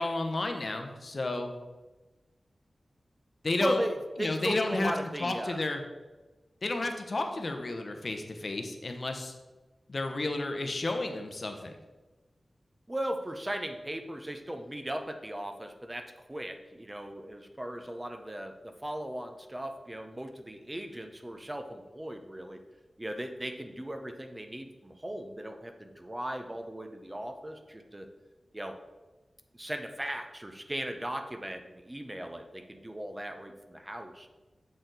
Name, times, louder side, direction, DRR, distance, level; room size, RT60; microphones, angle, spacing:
voice 1, 0.0-1.5 3.4-3.8 4.2-4.9 5.2-5.8 6.6-9.3 9.9-11.7, left 2 dB, 55° left, 5 dB, 0.8 m, -32 dB
voice 2, 3.6-5.6 12.9-22.6 23.0-28.1 28.5-28.8 29.5-34.3, right 1 dB, 20° right, 6 dB, 0.7 m, -37 dB
7.7 x 4.2 x 4.0 m, 1.2 s
wide cardioid pair, 70°, 0 cm